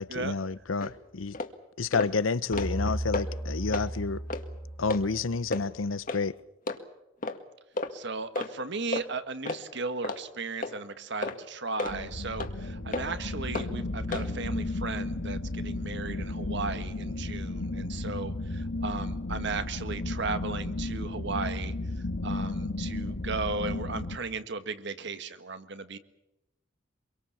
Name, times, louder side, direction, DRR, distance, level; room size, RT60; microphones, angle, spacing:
voice 1, 0.0-1.4 1.8-4.2 4.8-6.4, left 4 dB, 85° left, 0.8 m, -29 dB
sound 1, 0.8-0.9 1.3-1.5 1.9-2.1 2.4-2.8 3.1-3.3 3.7-3.9 4.3-4.4 4.9-5.0 5.5-5.7 6.1-6.2 6.7-6.8 7.2-7.4 7.8-7.9 8.4-8.5 8.9-9.0 9.5-9.6 10.0-10.2 10.6-10.8 11.2-11.4 11.8-12.0 12.4-12.5 12.9-13.1 13.5-13.7 14.1-14.3, left 2 dB, 45° left, 2.0 m, -32 dB
sound 2, 2.5-5.6, right 1 dB, 5° right, 2.2 m, -35 dB
voice 2, 7.9-21.7 22.2-26.0, right 4 dB, 60° right, 1.6 m, -36 dB
sound 3, 11.9-24.2, left 2 dB, 70° left, 1.5 m, -34 dB
25.0 x 23.0 x 7.2 m
head